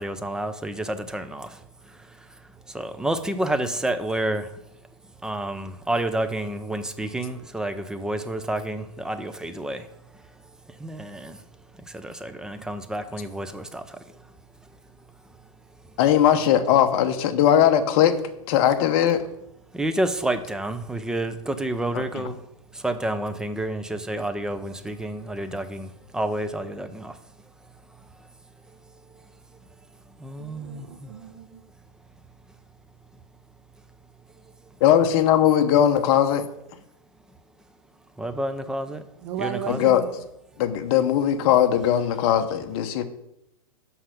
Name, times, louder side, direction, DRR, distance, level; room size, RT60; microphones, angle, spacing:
voice 1, 0.0-1.5 2.7-4.5 5.2-9.8 10.8-11.4 11.9-13.8 19.7-22.4 22.8-25.9 26.1-27.1 30.2-30.8 38.2-39.0 39.4-39.9, right 1 dB, 5° right, 9 dB, 0.4 m, -29 dB
voice 2, 16.0-18.2 18.5-19.2 21.9-22.3 34.8-36.4 39.7-40.0 40.6-43.0, left 10 dB, 45° left, 7 dB, 0.9 m, -19 dB
voice 3, 30.4-31.6 39.2-40.1, right 8 dB, 50° right, 9 dB, 1.1 m, -35 dB
5.9 x 5.5 x 6.6 m, 0.81 s
hypercardioid pair, 135°, 18 cm